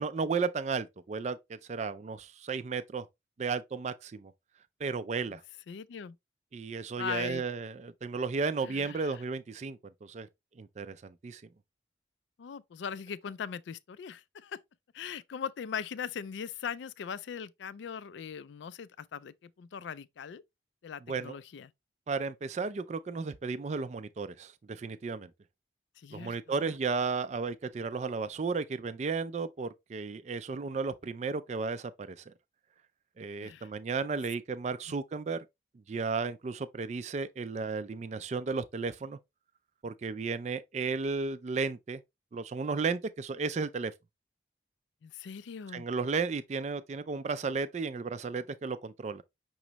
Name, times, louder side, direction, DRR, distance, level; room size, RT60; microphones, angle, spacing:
voice 1, 0.0-3.1 3.4-4.3 4.8-5.4 6.5-10.3 10.6-11.4 21.1-21.4 22.1-25.3 26.1-32.3 33.2-35.4 35.9-39.2 39.8-42.0 42.3-43.9 45.7-49.2, right 4 dB, 35° right, 0.3 m, -34 dB
voice 2, 5.7-6.2 7.0-7.4 8.6-9.2 12.4-14.6 14.9-20.4 20.8-21.7 26.0-26.8 33.4-33.7 34.1-34.2 45.0-45.8, left 7 dB, 70° left, 0.3 m, -40 dB
6.0 x 3.1 x 2.8 m
head